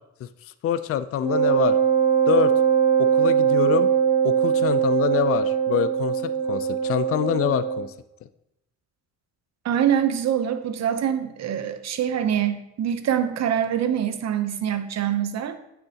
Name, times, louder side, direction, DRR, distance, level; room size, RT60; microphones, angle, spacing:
voice 1, 0.2-1.8 2.3-2.5 3.0-3.9 4.2-7.9, left 10 dB, 50° left, 13 dB, 0.4 m, -26 dB
Wind instrument woodwind instrument, 1.2-7.8, right 7 dB, 15° right, 2.6 m, -21 dB
voice 2, 9.6-15.6, right 9 dB, 60° right, 10 dB, 0.8 m, -24 dB
8.0 x 6.7 x 2.9 m, 0.84 s
cardioid pair, 90°, 30 cm